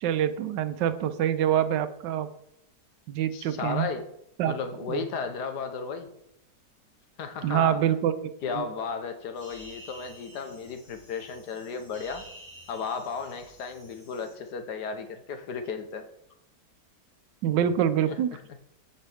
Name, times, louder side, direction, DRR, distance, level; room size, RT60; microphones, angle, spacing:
voice 1, 0.0-2.3 3.1-3.9 4.4-4.6 4.9-5.1 7.4-8.1 8.5-8.7 17.4-18.3, right 10 dB, 80° right, 12 dB, 1.2 m, -25 dB
voice 2, 3.3-4.1 4.4-6.1 7.2-7.8 8.4-12.3 12.7-16.1 18.1-18.4, left 5 dB, 70° left, 8 dB, 1.4 m, -34 dB
sound 1, 9.3-14.3, equal, 20° left, 3.3 m, -50 dB
13.0 x 5.5 x 3.4 m, 0.77 s
omnidirectional pair, 1.9 m